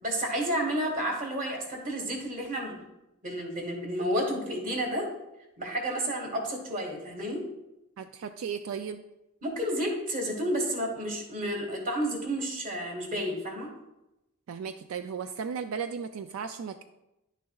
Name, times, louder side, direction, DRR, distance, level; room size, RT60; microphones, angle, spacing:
voice 1, 0.0-2.8 3.2-5.1 5.6-7.4 9.4-13.7, equal, 40° right, 2 dB, 1.5 m, -31 dB
voice 2, 8.0-9.0 14.5-16.8, right 6 dB, 80° right, 9 dB, 0.3 m, -35 dB
10.5 x 6.6 x 2.3 m, 0.92 s
head